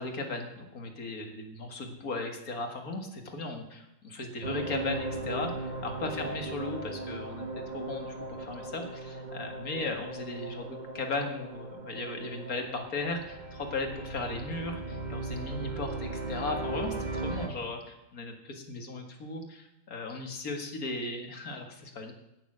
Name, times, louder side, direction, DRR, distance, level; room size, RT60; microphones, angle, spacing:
voice 1, 0.0-7.5 7.7-22.1, left 3 dB, 90° left, 4 dB, 2.3 m, -36 dB
sound 1, 4.4-17.5, right 2 dB, 35° right, 1.4 m, -38 dB
16.5 x 7.1 x 6.2 m, 0.92 s
omnidirectional pair, 1.5 m